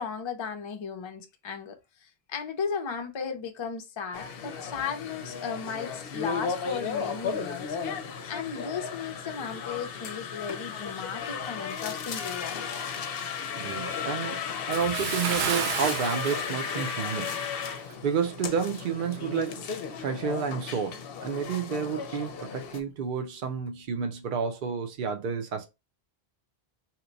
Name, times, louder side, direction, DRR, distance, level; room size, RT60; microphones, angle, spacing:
voice 1, 0.0-7.8 8.3-12.8, left 6 dB, 40° left, 0.5 m, -35 dB
sound 1, 4.1-22.8, left 6 dB, 70° left, 0.7 m, -35 dB
voice 2, 13.6-17.4 18.0-19.6 20.0-25.7, right 6 dB, 55° right, 0.8 m, -30 dB
Bathtub (filling or washing) / Splash splatter, 14.7-17.6 17.9-18.1 18.6-18.7, right 7 dB, 85° right, 0.9 m, -33 dB
2.9 x 2.1 x 3.8 m
omnidirectional pair, 1.0 m